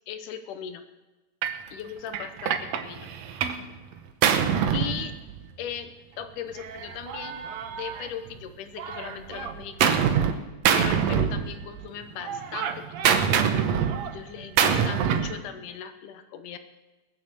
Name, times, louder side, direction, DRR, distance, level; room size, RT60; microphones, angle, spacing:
voice 1, 0.1-0.8 1.7-3.1 4.7-5.1 5.6-5.9 6.2-10.0 10.7-13.2 14.0-16.6, left 8 dB, 70° left, 8 dB, 2.1 m, -38 dB
Gunshot gunfire, 1.4-1.6 2.1-3.7 3.9-5.6 6.6-8.4 8.8-10.3 10.6-11.9 12.2-15.4, right 8 dB, 85° right, 1.5 m, -25 dB
22.0 x 7.6 x 6.8 m, 1.1 s
omnidirectional pair, 4.4 m